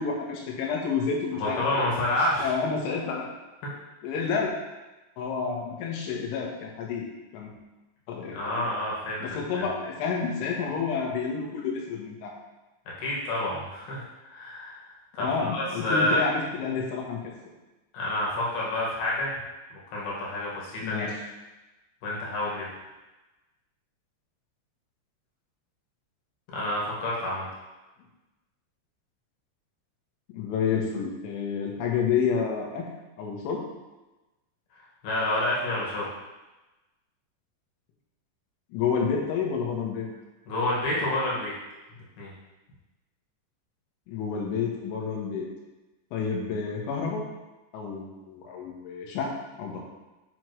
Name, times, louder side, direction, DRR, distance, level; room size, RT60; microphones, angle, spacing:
voice 1, 0.0-1.9 2.4-3.3 4.0-4.5 5.2-7.1 7.3-7.5 8.1-8.6 9.2-12.3 15.2-17.2 20.8-21.1 30.3-32.9 33.2-33.6 38.7-40.1 44.1-45.5 46.1-47.2 47.7-49.9, left 5 dB, 80° left, -1 dB, 3.5 m, -29 dB
voice 2, 1.4-2.5 8.3-9.6 13.0-16.3 17.9-19.4 19.7-21.1 22.0-22.7 26.5-27.5 35.0-36.1 40.5-41.5 42.2-42.3, left 1 dB, 60° left, -6 dB, 3.2 m, -29 dB
7.7 x 6.1 x 3.1 m, 1.1 s
omnidirectional pair, 5.7 m